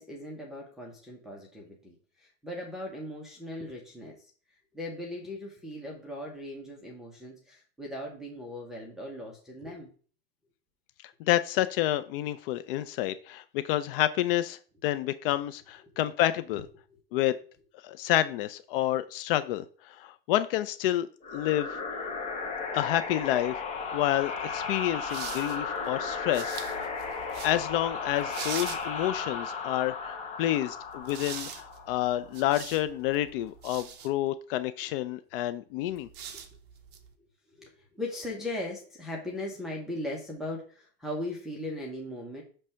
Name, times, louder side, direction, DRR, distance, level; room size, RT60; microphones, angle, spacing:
voice 1, 0.0-4.3 4.7-9.9 16.5-17.0 36.3-36.4 37.5-42.4, left 1 dB, ahead, -3 dB, 0.8 m, -39 dB
voice 2, 11.3-16.7 17.1-17.3 17.8-21.8 22.7-23.6 23.9-26.9 27.4-36.1, left 13 dB, 60° left, 12 dB, 0.5 m, -29 dB
sound 1, 21.2-32.6, left 5 dB, 20° left, 1.0 m, -35 dB
sound 2, 24.4-29.4 30.9-34.1 35.9-37.1, right 7 dB, 35° right, 0.8 m, -44 dB
6.1 x 3.3 x 5.5 m, 0.41 s
supercardioid pair, 155°, 31 cm